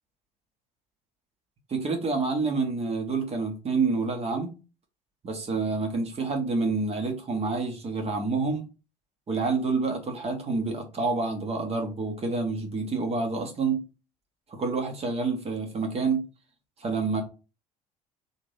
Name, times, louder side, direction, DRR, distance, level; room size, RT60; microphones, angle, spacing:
voice 1, 1.7-4.5 5.2-8.7 9.3-13.8 14.5-16.2 16.8-17.2, right 4 dB, 30° right, 1.4 m, -28 dB
4.1 x 3.3 x 3.5 m
figure-of-eight pair, 55°, 20 cm